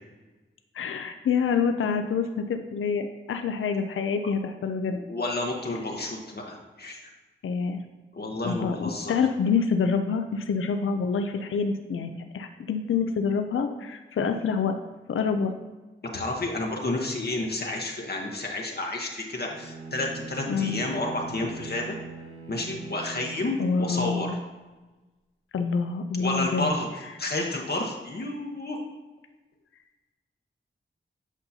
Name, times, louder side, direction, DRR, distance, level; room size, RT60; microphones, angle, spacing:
voice 1, 0.7-5.0 7.4-7.8 8.4-14.8 15.1-15.5 20.5-20.8 23.6-24.4 25.5-26.7, left 5 dB, 80° left, 7 dB, 0.4 m, -27 dB
voice 2, 5.1-7.0 8.1-9.1 16.1-22.0 22.5-24.3 26.2-26.9 27.2-28.8, left 2 dB, 50° left, 0 dB, 0.9 m, -30 dB
Bowed string instrument, 19.4-24.3, right 4 dB, 85° right, 1.0 m, -41 dB
8.2 x 5.4 x 2.7 m, 1.2 s
cardioid pair, 55°, 21 cm